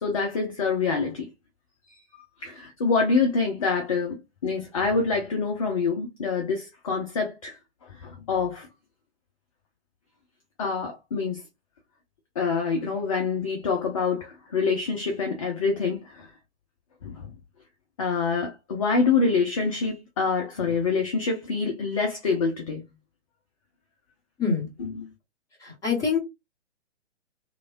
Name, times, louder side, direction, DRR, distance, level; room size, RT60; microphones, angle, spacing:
voice 1, 0.0-1.3 2.4-7.6 8.0-8.7 10.6-11.4 12.4-16.3 17.0-17.2 18.0-22.9 24.8-25.1, left 4 dB, 30° left, 0.5 m, -26 dB
voice 2, 25.6-26.2, left 5 dB, 10° left, 1.1 m, -25 dB
3.1 x 2.1 x 2.4 m
figure-of-eight pair, 120°, 35 cm